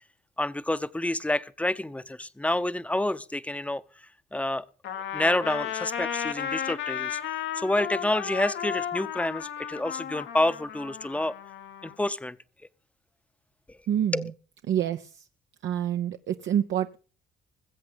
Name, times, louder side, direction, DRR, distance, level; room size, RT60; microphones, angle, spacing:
voice 1, 0.4-3.8 4.3-4.6 5.1-7.2 7.6-11.3 11.8-12.4 14.1-14.2, left 1 dB, 5° left, 0.8 m, -28 dB
Trumpet, 4.8-11.9, left 9 dB, 75° left, 1.5 m, -34 dB
voice 2, 13.9-14.3 14.7-15.3 15.6-17.0, right 10 dB, 70° right, 0.8 m, -27 dB
20.5 x 7.8 x 5.3 m
cardioid pair, 90°, 20 cm